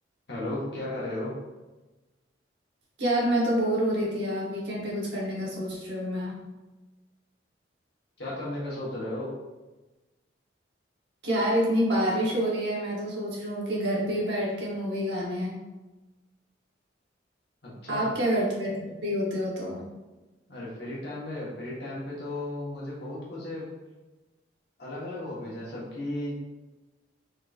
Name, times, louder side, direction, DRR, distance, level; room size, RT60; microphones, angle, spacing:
voice 1, 0.3-1.3 8.2-9.3 17.6-18.1 20.5-23.7 24.8-26.3, left 1 dB, 60° left, -7 dB, 1.2 m, -35 dB
voice 2, 3.0-6.3 11.2-15.6 17.9-18.7 19.0-19.8, equal, 65° right, -4 dB, 1.1 m, -27 dB
3.7 x 2.9 x 2.4 m, 1.1 s
head